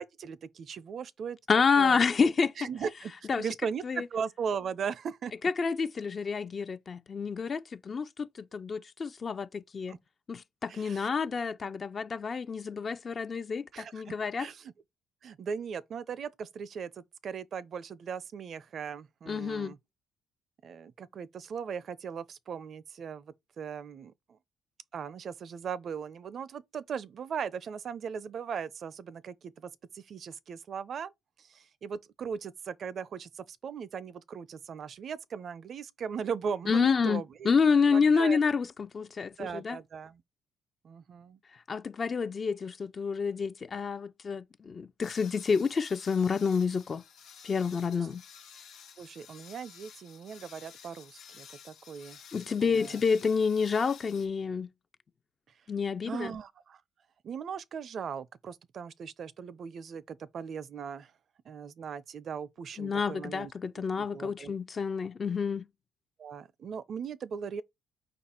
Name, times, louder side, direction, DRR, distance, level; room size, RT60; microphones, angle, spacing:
voice 1, 0.0-1.4 1.8-2.0 2.6-5.3 9.9-10.0 10.7-11.1 13.7-14.7 15.2-19.8 20.6-24.4 24.9-31.1 31.4-37.5 37.8-38.4 39.4-40.2 40.8-41.4 49.0-52.2 52.6-53.0 56.1-56.8 57.2-61.1 61.5-64.6 66.2-67.6, right 6 dB, 50° right, 0.4 m, -38 dB
voice 2, 1.5-2.5 3.3-3.4 3.8-4.0 5.4-9.9 10.3-14.5 19.3-19.7 36.7-39.8 41.7-47.0 47.4-48.2 52.3-54.7 55.7-56.3 62.8-65.7, left 5 dB, 40° left, 0.4 m, -28 dB
sound 1, 45.0-54.3, left 7 dB, 70° left, 1.0 m, -52 dB
5.1 x 2.4 x 4.3 m
cardioid pair, 90°, 0 cm